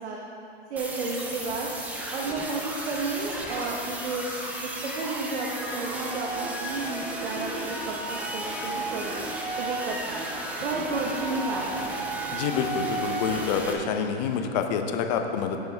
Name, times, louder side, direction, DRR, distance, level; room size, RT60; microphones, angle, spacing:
voice 1, 0.7-1.7 2.1-4.3 4.6-7.6 7.8-9.2 9.6-10.2 10.6-12.1, right 3 dB, 80° right, -2 dB, 1.4 m, -32 dB
sound 1, 0.8-13.7, right 2 dB, 5° right, 0.5 m, -33 dB
voice 2, 12.3-15.6, left 6 dB, 40° left, 5 dB, 0.8 m, -27 dB
15.5 x 6.9 x 3.5 m, 2.7 s
hypercardioid pair, 150°, 33 cm